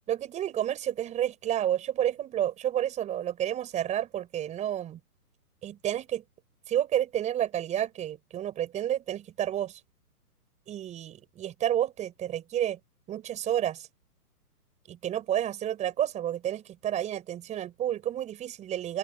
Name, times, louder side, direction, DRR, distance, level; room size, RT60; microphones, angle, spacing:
voice 1, 0.1-5.0 5.6-6.2 6.7-9.8 10.7-12.8 13.1-13.9 14.9-19.0, right 11 dB, 15° right, 5.8 m, -30 dB
open air
hypercardioid pair, 160°, 47 cm